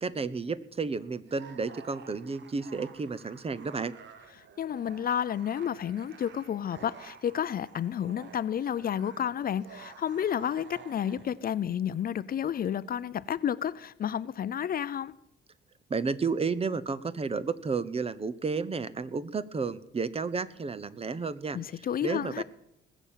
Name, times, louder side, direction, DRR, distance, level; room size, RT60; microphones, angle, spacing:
voice 1, 0.0-3.9 15.9-22.4, right 4 dB, 30° right, 0.8 m, -32 dB
sound 1, 1.2-11.4, right 7 dB, 65° right, 1.3 m, -51 dB
voice 2, 4.6-15.1 21.5-22.4, left 9 dB, 50° left, 0.5 m, -31 dB
20.0 x 7.1 x 7.4 m
cardioid pair, 90°, 20 cm